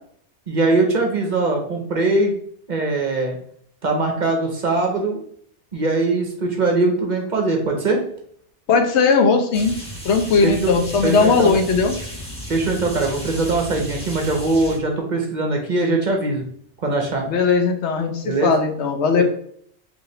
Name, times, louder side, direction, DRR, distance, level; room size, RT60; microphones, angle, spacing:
voice 1, 0.5-2.3 2.7-3.4 3.8-5.2 5.7-8.0 10.4-10.7 11.0-11.5 12.5-16.4 16.8-17.3 18.2-18.5 19.2-19.3, right 2 dB, 45° right, 2 dB, 0.8 m, -21 dB
voice 2, 8.7-9.7 10.0-11.9 17.3-19.2, left 4 dB, 75° left, 5 dB, 0.9 m, -18 dB
sound 1, 9.5-14.8, equal, 5° left, 1.4 m, -34 dB
4.6 x 2.9 x 3.2 m, 0.64 s
omnidirectional pair, 1.2 m